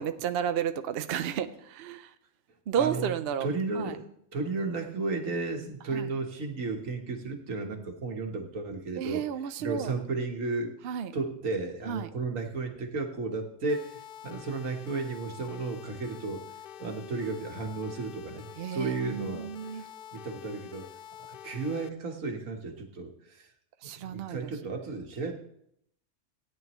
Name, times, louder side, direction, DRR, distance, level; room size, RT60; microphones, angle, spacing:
voice 1, 0.0-2.1 2.7-3.5 3.8-4.0 5.9-6.1 9.0-9.9 10.8-11.1 11.9-12.1 18.6-19.8 23.8-24.5, right 9 dB, 60° right, 10 dB, 0.7 m, -32 dB
voice 2, 2.8-3.1 3.4-4.0 4.3-9.2 9.6-10.7 11.1-16.4 16.8-18.4 18.7-19.9 20.1-20.9 21.2-23.5 24.0-25.4, right 3 dB, 85° right, 3 dB, 1.7 m, -33 dB
sound 1, 13.7-21.9, left 10 dB, 60° left, 0.5 m, -47 dB
17.0 x 9.5 x 3.0 m, 0.73 s
omnidirectional pair, 1.3 m